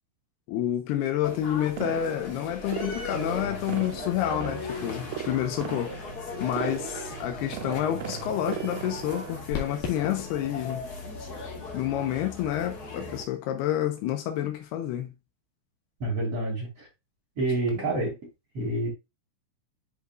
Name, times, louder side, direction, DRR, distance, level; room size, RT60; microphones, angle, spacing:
voice 1, 0.5-6.0 6.4-10.8 11.7-15.1, left 11 dB, 85° left, 2.9 m, -29 dB
sound 1, 1.2-13.2, left 3 dB, 45° left, 1.3 m, -38 dB
sound 2, 1.8-9.4, right 12 dB, 90° right, 2.6 m, -39 dB
sound 3, 5.2-12.9, left 6 dB, 60° left, 3.1 m, -43 dB
voice 2, 16.0-16.9 17.4-18.2 18.5-18.9, right 2 dB, 40° right, 3.3 m, -28 dB
11.0 x 4.9 x 2.4 m
omnidirectional pair, 4.5 m